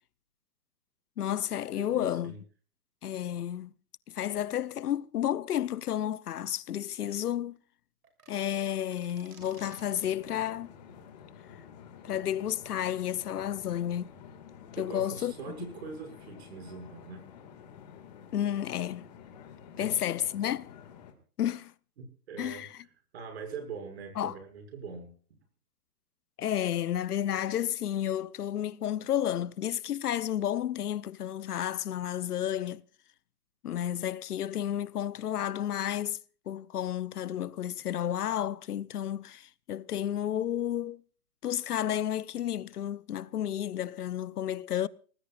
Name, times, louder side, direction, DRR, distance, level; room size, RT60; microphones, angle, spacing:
voice 1, 1.2-2.3 3.0-3.7 4.1-7.6 8.3-10.7 12.0-14.1 14.8-15.3 18.3-19.1 19.8-20.7 21.4-21.7 22.4-22.7 24.2-24.3 26.4-32.8 33.6-36.2 36.5-41.0 41.4-44.9, left 11 dB, 85° left, 0.9 m, -31 dB
voice 2, 1.7-2.4 14.8-17.2 19.8-19.9 22.0-22.7 23.1-25.1, right 5 dB, 45° right, 6.6 m, -42 dB
sound 1, 8.0-10.4, right 5 dB, 75° right, 6.5 m, -55 dB
sound 2, 9.4-21.1, left 7 dB, 30° left, 2.2 m, -50 dB
24.0 x 19.0 x 2.5 m
hypercardioid pair, 175°, 45 cm